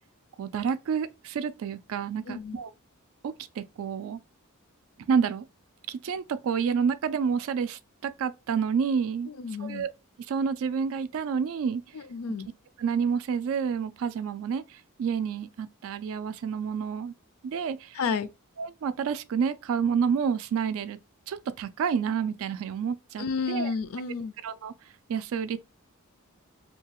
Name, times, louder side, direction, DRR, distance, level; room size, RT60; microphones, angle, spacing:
voice 1, 0.4-2.7 3.2-4.2 5.1-5.5 5.9-9.3 9.6-9.9 10.3-11.8 12.8-17.1 17.4-18.0 18.6-21.0 21.3-23.7 24.4-24.7 25.1-25.6, right 6 dB, 65° right, 0.3 m, -29 dB
voice 2, 2.3-2.6 9.3-9.9 11.9-12.5 17.9-18.3 23.2-24.3, left 5 dB, 70° left, 0.4 m, -31 dB
2.8 x 2.3 x 2.8 m
head